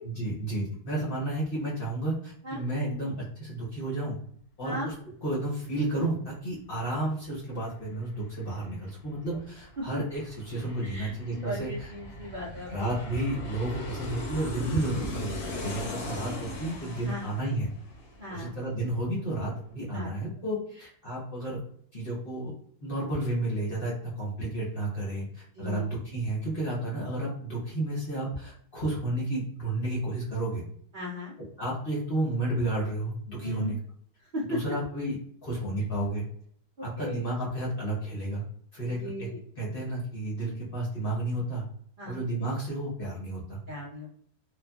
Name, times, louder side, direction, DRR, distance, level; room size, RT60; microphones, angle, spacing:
voice 1, 0.0-4.2 4.6-4.9 5.2-11.9 12.7-17.7 18.3-21.6 21.9-22.5 22.8-30.6 31.6-33.8 34.5-35.2 35.4-36.2 36.8-38.4 38.7-39.3 39.6-41.6 42.1-43.6, right 1 dB, 40° left, -5 dB, 0.9 m, -32 dB
Aircraft, 7.2-7.3 7.6-18.9 19.2-19.3, left 1 dB, 65° left, 1.2 m, -40 dB
voice 2, 10.8-12.7 17.0-17.2 18.2-18.6 19.9-20.1 25.5-25.9 30.9-31.3 33.4-33.7 34.3-34.6 36.8-37.3 39.0-39.4 42.0-42.2 43.7-44.1, left 1 dB, 75° right, -6 dB, 0.4 m, -36 dB
3.2 x 2.3 x 2.2 m, 0.63 s
omnidirectional pair, 1.8 m